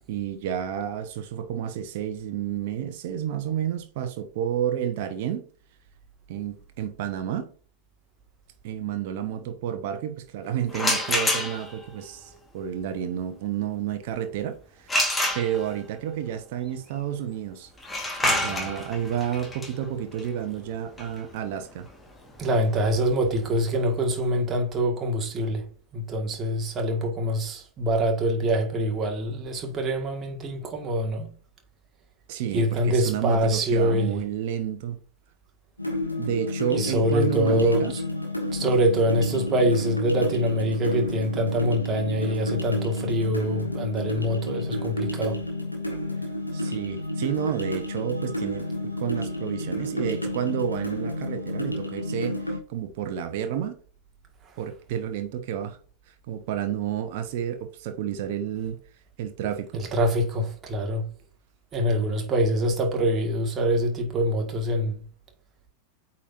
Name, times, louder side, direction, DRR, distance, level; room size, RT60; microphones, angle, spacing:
voice 1, 0.1-5.4 6.3-7.5 8.6-17.7 18.2-21.9 32.3-35.0 36.2-37.9 46.5-52.4 52.7-53.8 54.6-55.8 56.3-58.8 59.2-59.7, right 9 dB, 50° right, 0.9 m, -30 dB
sound 1, 10.7-11.9 14.9-15.9 17.8-23.5, left 1 dB, 10° left, 1.4 m, -28 dB
voice 2, 22.4-25.7 25.9-31.3 32.5-34.2 36.7-38.0 38.5-45.4 59.7-61.1 61.7-65.1, equal, 25° right, 1.7 m, -25 dB
sound 2, 35.8-52.6, left 1 dB, 85° left, 1.5 m, -30 dB
8.4 x 4.3 x 2.6 m
figure-of-eight pair, 90°, 0 cm